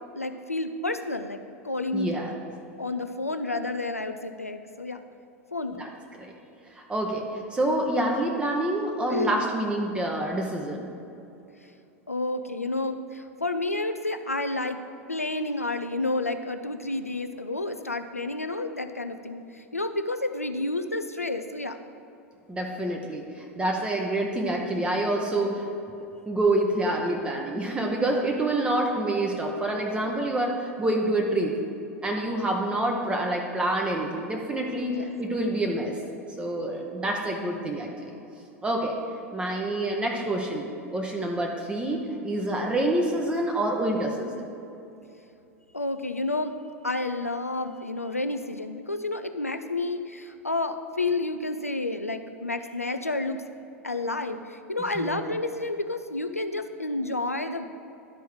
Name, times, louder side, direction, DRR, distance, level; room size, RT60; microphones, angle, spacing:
voice 1, 0.2-2.2 2.8-5.0 5.5-5.9 9.1-9.4 12.1-14.8 15.1-21.8 34.9-35.1 45.7-46.5 46.8-53.4 53.8-57.7, left 2 dB, 90° left, 9 dB, 0.4 m, -30 dB
voice 2, 1.9-2.3 5.8-5.9 6.2-6.3 6.7-10.9 22.5-25.6 26.3-31.5 32.0-36.0 36.4-38.1 38.6-39.0 39.3-44.4 54.9-55.2, right 1 dB, 15° right, 0 dB, 0.9 m, -27 dB
11.5 x 4.5 x 4.7 m, 2.7 s
figure-of-eight pair, 85°, 8 cm